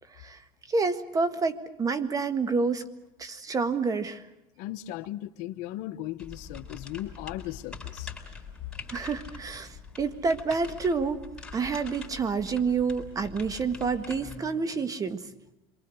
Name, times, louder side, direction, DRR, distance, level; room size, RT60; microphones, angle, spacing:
voice 1, 0.7-2.9 3.2-4.2 8.9-11.2 11.5-15.2, right 4 dB, 25° right, 11 dB, 1.7 m, -28 dB
voice 2, 4.6-8.1, left 14 dB, 65° left, 11 dB, 1.1 m, -37 dB
sound 1, 6.2-14.4, left 4 dB, 5° left, 5.3 m, -44 dB
27.0 x 23.5 x 6.4 m, 0.91 s
supercardioid pair, 120°, 14 cm